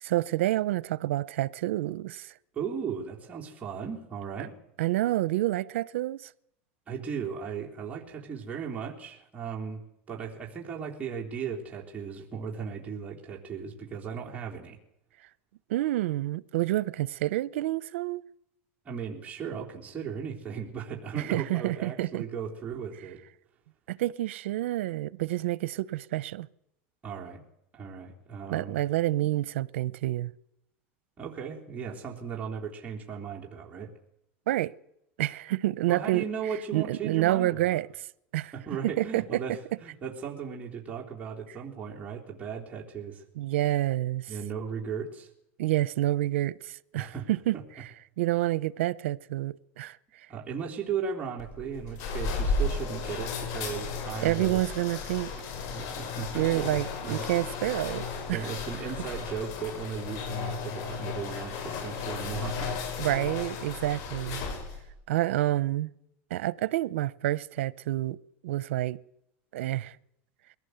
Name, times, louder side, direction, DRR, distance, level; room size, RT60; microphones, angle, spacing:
voice 1, 0.0-2.3 4.8-6.3 15.7-18.2 21.2-22.2 23.9-26.5 28.5-30.3 34.5-34.7 35.2-36.2 36.7-37.9 38.3-38.5 39.0-39.4 43.4-44.3 45.6-47.9 48.2-50.0 54.2-55.3 56.3-58.4 63.0-64.4 65.1-65.9 66.3-68.2 68.4-69.0 69.5-70.0, right 16 dB, 90° right, 0.7 m, -28 dB
voice 2, 2.5-4.5 6.9-9.8 10.1-14.8 18.9-23.2 27.0-27.4 27.7-28.8 31.2-33.9 35.9-37.8 38.5-43.2 44.3-45.3 47.0-47.3 47.5-47.6 50.3-54.6 55.7-57.3 58.3-62.8, right 6 dB, 20° right, 3.5 m, -36 dB
sound 1, 51.4-64.9, left 4 dB, 60° left, 6.5 m, -34 dB
22.5 x 17.5 x 8.0 m
supercardioid pair, 125°, 7 cm